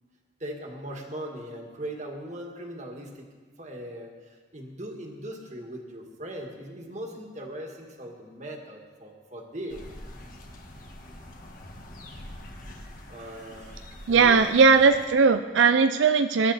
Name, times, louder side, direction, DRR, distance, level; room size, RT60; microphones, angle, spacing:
voice 1, 0.4-3.3 3.6-9.9 13.1-13.8 14.1-14.4, right 1 dB, 40° right, 2 dB, 1.9 m, -39 dB
sound 1, 9.7-15.1, left 1 dB, 45° left, 1.6 m, -44 dB
voice 2, 14.1-16.5, right 5 dB, 90° right, 8 dB, 0.5 m, -19 dB
21.0 x 10.5 x 4.2 m, 1.5 s
head